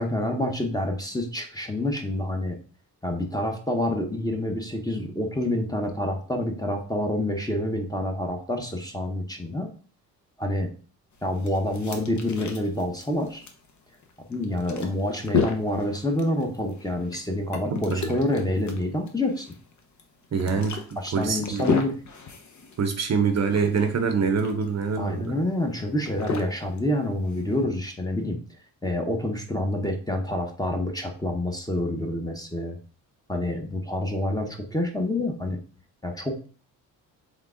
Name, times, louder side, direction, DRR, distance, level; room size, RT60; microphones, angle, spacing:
voice 1, 0.0-2.6 3.0-9.7 10.4-10.7 11.2-13.4 14.3-19.5 20.5-20.6 21.0-21.9 25.0-28.4 28.8-32.8 33.3-35.6 36.0-36.5, left 1 dB, 10° left, 3 dB, 0.9 m, -27 dB
sound 1, 11.1-27.6, left 5 dB, 50° left, 0.9 m, -34 dB
voice 2, 17.7-18.1 20.3-21.7 22.8-25.3, right 5 dB, 45° right, 6 dB, 0.7 m, -25 dB
3.7 x 3.5 x 3.7 m, 0.40 s
cardioid pair, 80°, 38 cm